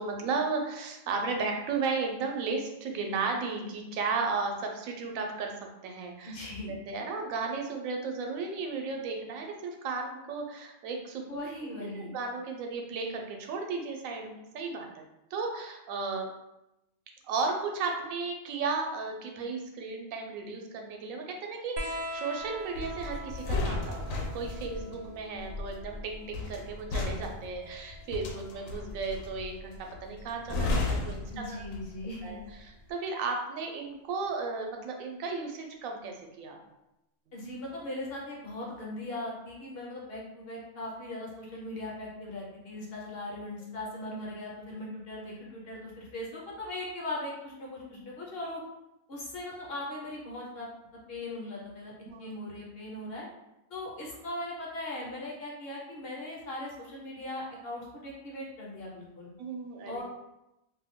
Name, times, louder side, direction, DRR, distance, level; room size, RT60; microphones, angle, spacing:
voice 1, 0.0-6.3 6.7-11.2 11.9-14.9 15.3-16.3 17.2-31.6 32.2-36.6 44.0-44.2 47.8-48.0 52.0-52.3 59.4-60.0, right 4 dB, 90° right, 2 dB, 1.0 m, -34 dB
voice 2, 6.2-6.8 11.3-12.1 31.3-32.4 37.3-48.6 49.1-50.7 51.1-51.9 52.2-53.3 53.7-59.3 59.9-60.0, left 1 dB, 55° left, -3 dB, 0.8 m, -39 dB
sound 1, 21.8-28.8 30.2-31.0 32.3-32.4, equal, 60° right, 0.6 m, -43 dB
sound 2, 22.7-32.1 32.4-32.7, left 2 dB, 90° left, 1.0 m, -34 dB
2.6 x 2.2 x 3.4 m, 0.90 s
omnidirectional pair, 1.4 m